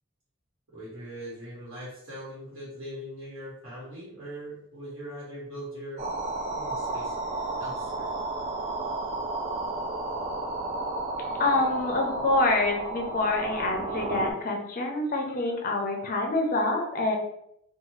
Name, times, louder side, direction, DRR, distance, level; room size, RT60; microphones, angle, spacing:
voice 1, 0.7-6.1 6.5-7.1 7.6-8.1, equal, 70° right, -8 dB, 1.2 m, -41 dB
sound 1, 6.0-14.3, right 2 dB, 35° right, 0.4 m, -32 dB
voice 2, 11.4-17.2, left 2 dB, 45° left, 1 dB, 0.5 m, -26 dB
2.6 x 2.3 x 3.0 m, 0.74 s
head